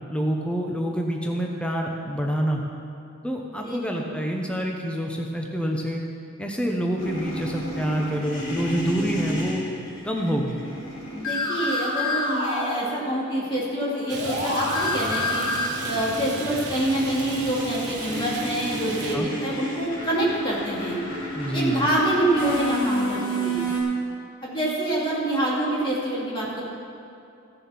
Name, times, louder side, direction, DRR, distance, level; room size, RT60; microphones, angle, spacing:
voice 1, 0.1-2.6 3.2-6.0 6.4-9.6 10.0-10.6 19.1-19.3 21.3-21.9, equal, 5° left, 0 dB, 0.8 m, -27 dB
sound 1, 7.0-13.3 13.6-23.8, left 1 dB, 75° left, 2.9 m, -30 dB
voice 2, 11.1-15.5 15.8-21.0 21.5-23.6 24.4-26.6, right 1 dB, 25° left, -6 dB, 2.7 m, -26 dB
Rain, 14.1-19.2, right 3 dB, 55° right, 1.5 m, -35 dB
15.0 x 7.0 x 5.9 m, 2.6 s
head